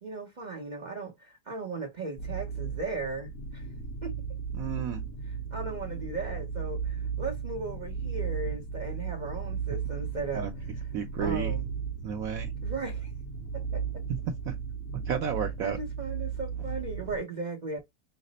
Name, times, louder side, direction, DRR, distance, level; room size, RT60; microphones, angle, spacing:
voice 1, 0.0-3.7 4.0-4.1 5.2-10.9 11.2-11.8 12.6-13.1 13.5-13.8 15.6-17.8, right 3 dB, 45° right, 0.5 m, -37 dB
sound 1, 2.2-17.2, right 6 dB, 55° left, 1.3 m, -35 dB
voice 2, 4.6-5.0 10.3-10.5 10.9-11.5 12.0-12.5 14.5-14.6 15.1-15.8, right 7 dB, 70° right, 0.8 m, -32 dB
5.7 x 2.0 x 3.9 m
omnidirectional pair, 1.9 m